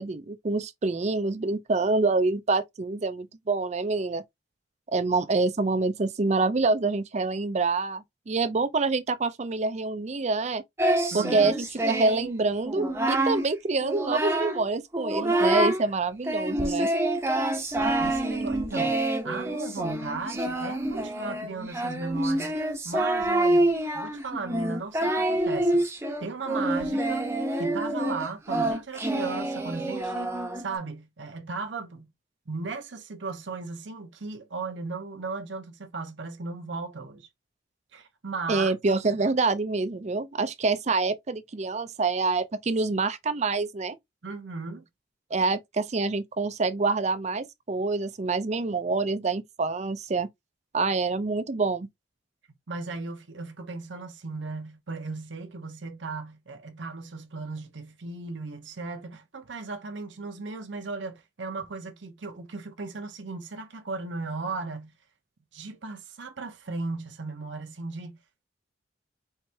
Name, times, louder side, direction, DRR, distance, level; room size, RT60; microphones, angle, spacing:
voice 1, 0.0-4.2 4.9-10.6 11.1-16.9 38.5-44.0 45.3-50.3 50.7-51.9, right 3 dB, 35° right, 0.5 m, -26 dB
Singing, 10.8-12.3 12.7-13.4 13.8-14.6 14.9-15.8 16.2-30.7, right 1 dB, 15° right, 0.8 m, -27 dB
voice 2, 11.1-11.5 17.8-25.9 26.2-27.3 27.6-32.1 32.5-37.3 37.9-38.7 44.2-44.8 52.7-64.9 65.5-68.2, right 3 dB, 70° right, 0.8 m, -36 dB
4.7 x 3.2 x 2.7 m
head